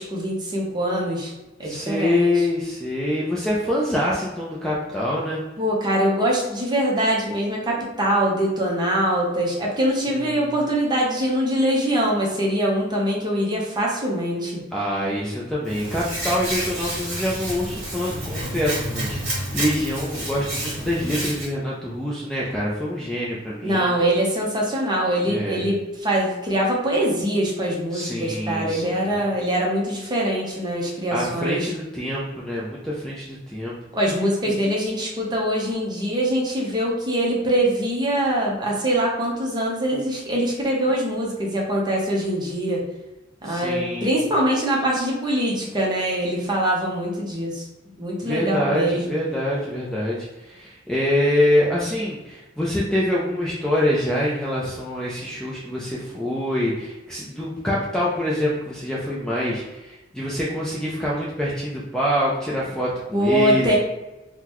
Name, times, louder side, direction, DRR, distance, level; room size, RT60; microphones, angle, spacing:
voice 1, 0.0-1.3 1.6-2.4 5.6-14.6 23.6-31.7 33.9-42.8 43.4-49.2 63.1-63.8, right 1 dB, 20° right, -3 dB, 0.7 m, -23 dB
voice 2, 1.6-5.4 10.1-10.6 14.7-23.9 25.2-25.7 27.9-29.1 31.1-33.7 34.4-34.5 43.4-44.2 48.2-63.8, left 1 dB, 5° left, -6 dB, 0.4 m, -25 dB
Hands, 15.7-21.5, right 1 dB, 35° right, 1.5 m, -29 dB
3.8 x 2.1 x 2.9 m, 1.0 s
head